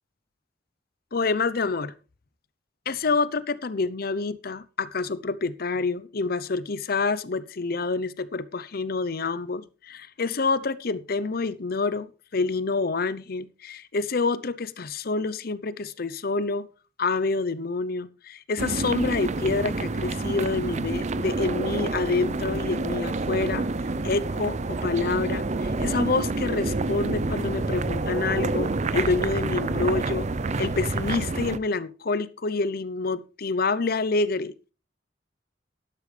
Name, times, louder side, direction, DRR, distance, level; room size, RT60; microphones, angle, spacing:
voice 1, 1.1-1.9 2.9-16.7 17.0-23.7 24.0-30.3 30.6-34.5, left 3 dB, 55° left, 0.7 m, -27 dB
sound 1, 18.6-31.6, right 3 dB, 40° right, 0.6 m, -28 dB
11.5 x 11.5 x 3.3 m
head